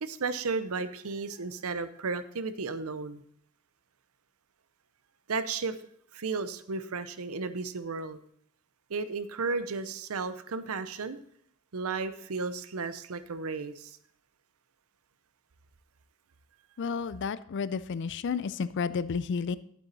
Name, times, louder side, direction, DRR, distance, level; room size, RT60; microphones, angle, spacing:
voice 1, 0.0-3.2 5.3-5.8 6.1-8.2 8.9-11.2 11.7-14.0, right 4 dB, 75° right, 12 dB, 0.7 m, -34 dB
voice 2, 16.8-19.6, left 5 dB, 55° left, 17 dB, 0.4 m, -31 dB
12.0 x 8.3 x 4.0 m, 0.69 s
head